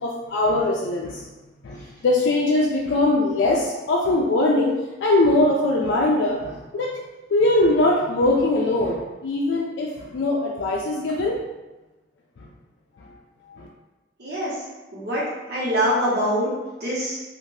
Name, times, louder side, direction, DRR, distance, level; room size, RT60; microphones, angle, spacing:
voice 1, 0.0-1.2 1.6-6.9 7.3-11.4 13.5-13.7, left 2 dB, 80° left, -2 dB, 0.4 m, -21 dB
voice 2, 14.2-14.5 14.9-15.2 15.5-16.5 16.8-17.2, equal, 60° right, -7 dB, 1.1 m, -23 dB
2.6 x 2.4 x 3.2 m, 1.1 s
head